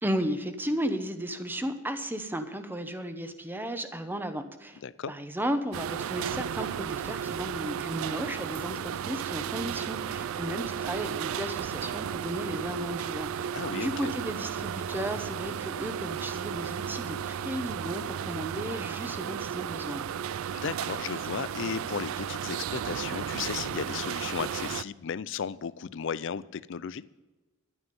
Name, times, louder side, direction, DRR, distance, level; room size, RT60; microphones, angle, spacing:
voice 1, 0.0-4.8 5.1-13.4 13.7-20.0, equal, 10° right, 9 dB, 0.8 m, -34 dB
voice 2, 4.8-5.1 13.5-14.1 20.5-27.0, left 7 dB, 60° left, 18 dB, 0.4 m, -35 dB
sound 1, 5.7-24.8, right 8 dB, 80° right, 0.3 m, -34 dB
11.0 x 9.7 x 5.3 m, 1.2 s
head